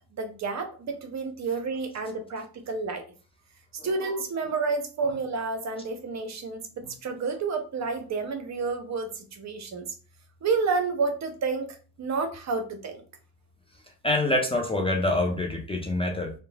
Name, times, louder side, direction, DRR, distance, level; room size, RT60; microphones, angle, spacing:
voice 1, 0.2-3.0 3.8-9.8 10.4-13.0, right 4 dB, 40° right, 5 dB, 0.6 m, -30 dB
voice 2, 14.0-16.3, left 2 dB, 15° left, 1 dB, 0.5 m, -25 dB
3.0 x 2.1 x 2.2 m, 0.37 s
hypercardioid pair, 50°, 46 cm